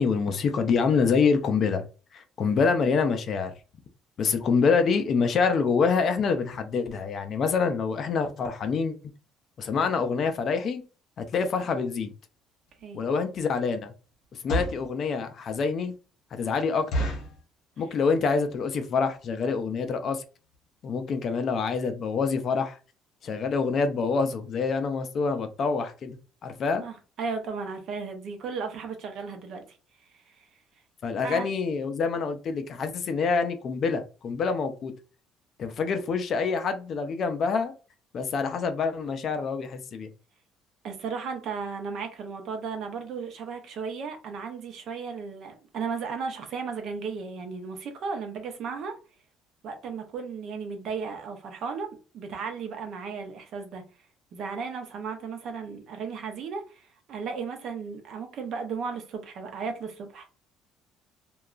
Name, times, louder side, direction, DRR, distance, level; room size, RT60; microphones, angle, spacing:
voice 1, 0.0-1.8 2.1-3.5 4.2-9.0 9.6-10.8 11.2-12.1 12.9-13.9 14.4-15.9 16.3-17.1 17.8-20.2 20.8-22.8 23.2-26.8 31.0-34.9 35.6-37.7 38.1-40.1, left 5 dB, 40° left, 0.4 m, -26 dB
sound 1, 12.7-12.8 13.3-13.5 14.2-14.9 15.4-15.5 15.9-16.0 16.3-16.4 16.9-17.4 18.0-18.3 18.6-18.7 18.9-19.1 19.7-19.8 20.0-20.2 20.5-20.6 20.8-20.9, equal, 60° left, 1.0 m, -30 dB
voice 2, 26.8-29.8 30.3-30.4 31.2-31.5 40.8-49.0 49.6-53.8 54.3-56.8 57.1-60.3, right 5 dB, 50° right, 0.6 m, -35 dB
2.8 x 2.2 x 2.4 m
cardioid pair, 160°, 0 cm